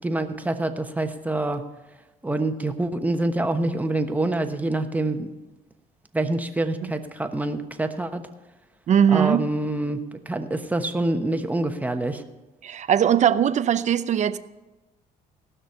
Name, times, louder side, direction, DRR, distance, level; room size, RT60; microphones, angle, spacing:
voice 1, 0.0-1.6 2.2-5.3 6.1-8.2 9.1-12.2, right 2 dB, 10° right, 6 dB, 1.1 m, -26 dB
voice 2, 8.9-9.5 12.6-14.4, right 9 dB, 45° right, 13 dB, 0.6 m, -20 dB
17.5 x 6.2 x 6.8 m, 1.1 s
cardioid pair, 110°, 17 cm